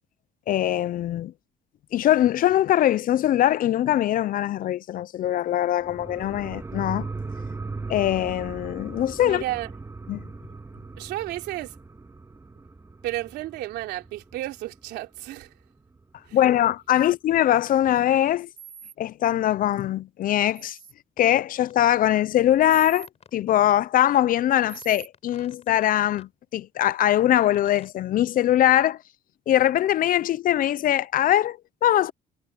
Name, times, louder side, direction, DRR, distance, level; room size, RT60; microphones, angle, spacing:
voice 1, 0.5-1.3 1.9-7.1 7.9-9.4 10.1-10.2 16.3-18.5 19.0-20.8 21.2-29.0 29.5-32.1, left 12 dB, 55° left, 0.6 m, -22 dB
sound 1, 5.8-14.9 15.3-15.4, right 3 dB, 15° right, 2.6 m, -38 dB
voice 2, 9.2-9.7 11.0-11.8 13.0-15.5 16.3-16.4 17.0-17.1, right 15 dB, 85° right, 3.4 m, -32 dB
sound 2, 18.6-18.9 20.5-20.9 22.7-23.1 24.7-25.1, right 7 dB, 55° right, 4.9 m, -43 dB
sound 3, 21.2-21.3 21.6-21.8 23.0-23.4 23.7-23.8 24.1-25.9 26.1-26.3 27.0-27.2 27.5-27.9, left 6 dB, 40° left, 5.8 m, -51 dB
cardioid pair, 110°, 17 cm